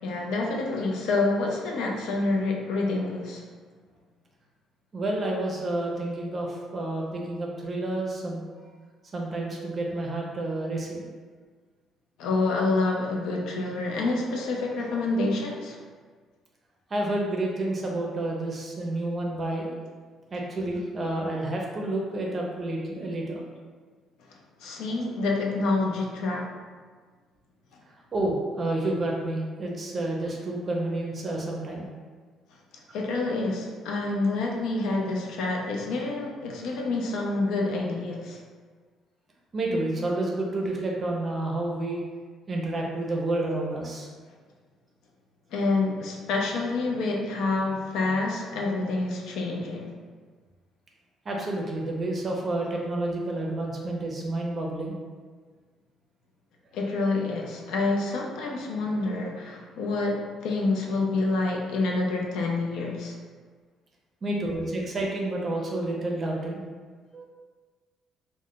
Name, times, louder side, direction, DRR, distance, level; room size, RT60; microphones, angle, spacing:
voice 1, 0.0-3.4 12.2-15.8 24.3-26.5 32.9-38.4 45.5-49.9 56.7-63.2, left 3 dB, 80° left, 0 dB, 0.4 m, -27 dB
voice 2, 4.9-8.5 9.1-11.1 16.9-19.7 20.3-23.4 24.6-24.7 28.1-31.9 39.5-42.0 42.5-44.1 51.3-55.0 64.2-66.6 67.1-67.2, right 2 dB, 30° right, -1 dB, 0.5 m, -29 dB
2.3 x 2.1 x 3.6 m, 1.5 s
cardioid pair, 135°, 0 cm